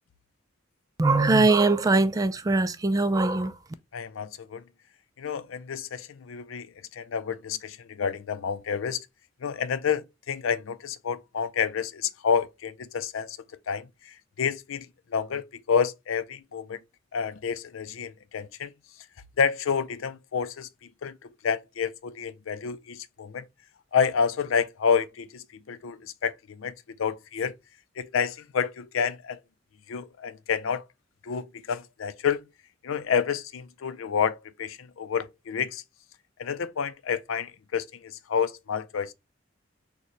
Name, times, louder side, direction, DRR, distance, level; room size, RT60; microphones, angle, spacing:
voice 1, 1.0-3.5, right 3 dB, 20° right, 0.3 m, -21 dB
voice 2, 3.9-4.6 5.2-9.1 9.4-13.4 13.7-16.8 17.1-18.7 19.4-21.2 21.4-23.4 23.9-26.7 27.0-27.6 28.0-29.4 29.9-30.8 31.2-32.4 32.8-35.8 36.4-39.1, left 6 dB, 90° left, 0.5 m, -29 dB
6.5 x 2.2 x 3.0 m
head